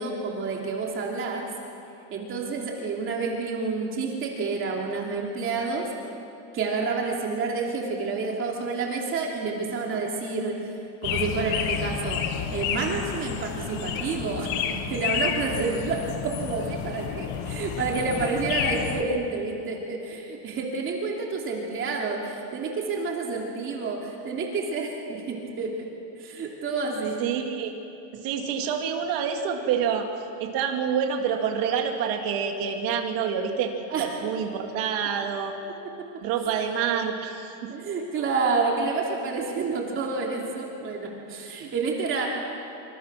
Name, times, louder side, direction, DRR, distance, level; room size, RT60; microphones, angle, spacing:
voice 1, 0.0-1.5 2.1-5.9 6.5-10.6 11.0-12.2 12.5-25.9 26.2-27.2 33.9-34.1 37.7-42.3, right 4 dB, 30° right, -1 dB, 2.9 m, -29 dB
sound 1, 11.0-19.0, left 8 dB, 65° left, 2.0 m, -30 dB
voice 2, 27.2-27.7 28.2-30.1 30.4-33.7 34.0-35.5 36.2-37.7, right 7 dB, 60° right, 3 dB, 3.0 m, -27 dB
27.5 x 25.0 x 6.2 m, 2.8 s
cardioid pair, 180°, 39 cm